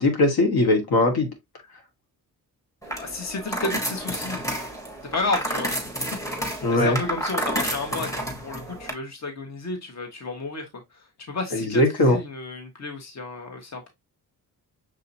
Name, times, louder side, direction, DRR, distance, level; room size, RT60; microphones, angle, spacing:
voice 1, 0.0-1.3 6.6-7.0 11.5-12.2, left 2 dB, 70° left, 1.6 m, -20 dB
sound 1, 2.8-8.9, right 1 dB, 10° left, 1.3 m, -30 dB
voice 2, 3.0-4.5 5.1-5.8 6.3-13.9, left 3 dB, 45° left, 1.5 m, -32 dB
6.5 x 2.9 x 2.7 m
cardioid pair, 105°, 38 cm